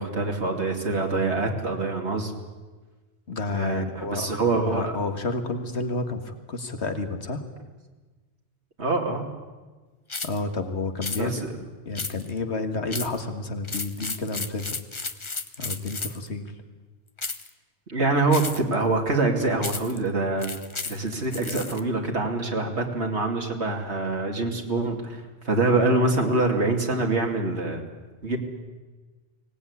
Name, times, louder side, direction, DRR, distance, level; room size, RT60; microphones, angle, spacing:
voice 1, 0.0-2.3 3.5-5.0 8.8-9.3 11.2-11.5 17.9-20.5 20.9-27.8 28.2-28.4, right 2 dB, 80° right, 2 dB, 3.0 m, -25 dB
voice 2, 3.3-7.4 10.2-11.5 11.9-14.8 15.6-16.5, left 3 dB, 80° left, 7 dB, 2.1 m, -30 dB
sound 1, 10.1-10.4 11.0-11.2 12.0-12.4 12.9-13.2 13.6-16.3 17.2-17.5 18.3-18.7 19.6-20.0 20.4-21.8, left 3 dB, 30° left, 1.1 m, -33 dB
24.0 x 18.5 x 9.7 m, 1.3 s
omnidirectional pair, 1.1 m